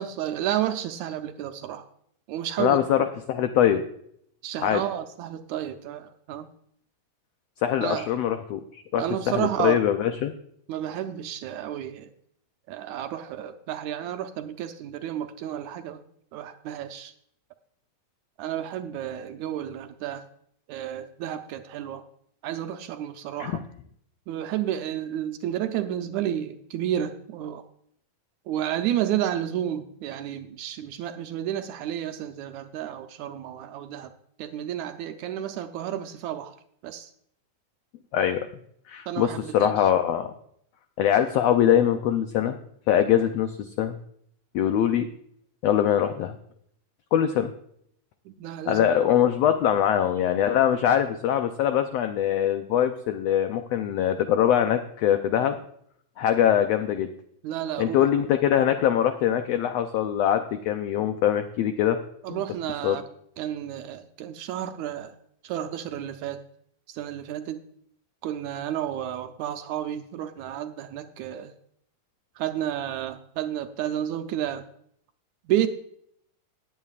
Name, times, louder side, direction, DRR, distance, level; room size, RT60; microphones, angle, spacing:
voice 1, 0.0-1.9 2.3-2.8 4.4-6.5 7.8-8.1 9.0-9.8 10.7-12.1 12.7-16.0 16.3-17.1 18.4-20.2 20.7-22.0 22.4-23.6 24.3-27.6 28.5-34.1 34.4-36.6 36.8-37.1 39.1-39.8 48.3-48.9 57.4-58.0 62.2-63.0 63.4-65.2 65.4-66.4 66.9-67.6 68.2-71.5 72.4-74.6 75.5-75.7, right 11 dB, 75° right, 8 dB, 1.8 m, -31 dB
voice 2, 2.6-3.8 4.6-4.8 7.6-10.3 23.4-23.6 38.1-38.5 38.9-40.3 41.0-42.6 42.9-43.9 44.5-45.1 45.6-46.3 47.1-47.5 48.7-55.6 56.2-57.1 57.8-62.0 62.3-62.4 62.8-63.0, left 10 dB, 85° left, 8 dB, 1.4 m, -23 dB
19.0 x 8.8 x 2.4 m, 0.68 s
omnidirectional pair, 3.6 m